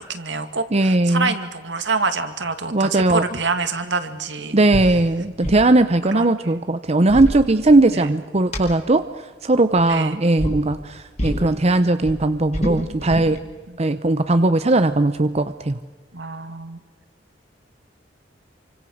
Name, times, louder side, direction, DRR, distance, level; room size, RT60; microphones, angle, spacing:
voice 1, 0.0-4.6 6.1-6.6 7.9-8.1 9.8-10.3 13.7-13.8 16.1-16.8, right 4 dB, 70° right, 8 dB, 2.2 m, -27 dB
voice 2, 0.7-1.3 2.7-3.2 4.5-9.1 9.4-13.4 13.8-15.8, right 2 dB, 35° right, 10 dB, 0.8 m, -18 dB
sound 1, 4.7-4.9 5.2-5.7 6.8-8.1 8.5-8.6 9.7-10.0 10.4-10.6 11.2-11.5 11.8-13.4, equal, 35° left, 4.8 m, -27 dB
28.5 x 25.0 x 6.5 m, 1.4 s
head